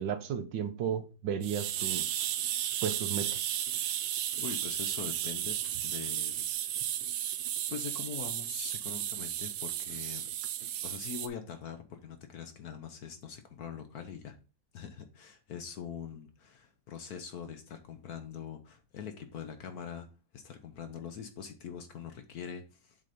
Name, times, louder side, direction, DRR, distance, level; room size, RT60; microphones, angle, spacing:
voice 1, 0.0-2.5 2.8-3.5, right 8 dB, 70° right, 1.4 m, -35 dB
sound 1, 1.4-11.3, right 11 dB, 85° right, 1.5 m, -34 dB
voice 2, 4.4-6.9 7.7-10.3 10.8-14.4 14.7-20.1 20.3-23.0, left 7 dB, 60° left, 1.2 m, -43 dB
7.5 x 4.0 x 4.9 m
omnidirectional pair, 2.1 m